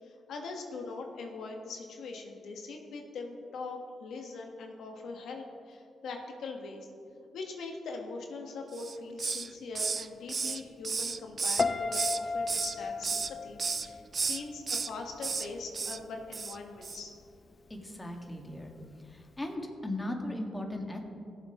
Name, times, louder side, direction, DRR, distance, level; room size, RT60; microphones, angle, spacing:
voice 1, 0.0-6.9 7.3-17.1, left 3 dB, 80° left, 2 dB, 1.4 m, -42 dB
Hiss, 8.7-9.5 9.7-12.2 12.5-13.3 13.6-13.9 14.1-14.9 15.2-15.5 15.7-16.0 16.3-16.6 16.8-17.0, right 5 dB, 45° right, 0.4 m, -33 dB
Piano, 11.6-14.7 15.0-15.4, left 4 dB, 45° left, 0.6 m, -34 dB
voice 2, 17.7-18.7 19.1-21.0, left 1 dB, 20° left, 1 dB, 1.9 m, -37 dB
17.5 x 7.5 x 3.1 m, 2.5 s
supercardioid pair, 60°, 0 cm